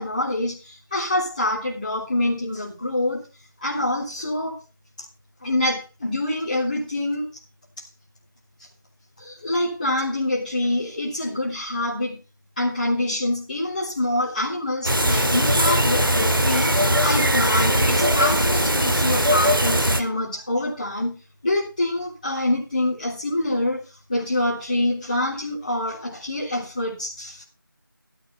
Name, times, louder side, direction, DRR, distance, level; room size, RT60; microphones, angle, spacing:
voice 1, 0.0-3.3 3.6-4.6 5.4-7.3 9.2-12.2 12.6-23.8 24.1-27.4, left 1 dB, 20° left, 3.5 m, -26 dB
sound 1, 14.8-20.0, equal, 75° right, 2.3 m, -20 dB
14.0 x 12.0 x 3.5 m
figure-of-eight pair, 170°, 12 cm